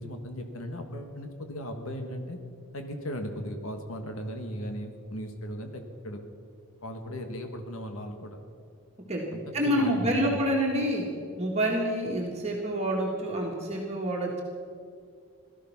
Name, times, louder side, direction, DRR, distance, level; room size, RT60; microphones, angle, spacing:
voice 1, 0.0-2.4 2.7-6.2 6.8-8.4 9.3-10.4, equal, 75° left, 5 dB, 1.6 m, -37 dB
voice 2, 9.5-11.0 11.4-14.4, equal, 30° right, -2 dB, 1.9 m, -27 dB
17.5 x 13.5 x 5.9 m, 2.3 s
head